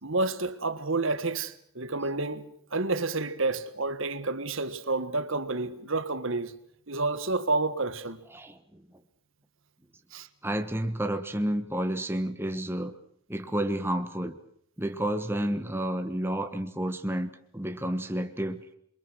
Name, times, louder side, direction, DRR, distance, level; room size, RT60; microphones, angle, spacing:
voice 1, 0.0-6.5 6.9-8.2 10.1-10.3, right 3 dB, 60° right, 1.6 m, -29 dB
voice 2, 8.3-8.8 10.4-12.9 13.3-14.4 14.8-18.6, right 1 dB, 10° right, 1.3 m, -30 dB
28.5 x 23.5 x 6.2 m
head